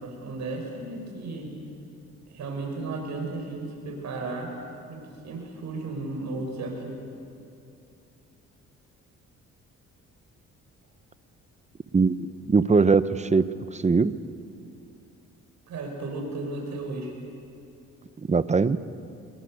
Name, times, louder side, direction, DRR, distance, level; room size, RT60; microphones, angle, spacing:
voice 1, 0.0-1.5 2.3-4.5 4.9-7.0 15.7-17.1, right 2 dB, 65° right, 1 dB, 6.6 m, -34 dB
voice 2, 11.9-14.2 18.3-18.8, right 4 dB, 25° right, 14 dB, 0.9 m, -21 dB
24.5 x 22.5 x 8.1 m, 2.6 s
cardioid pair, 90°, 30 cm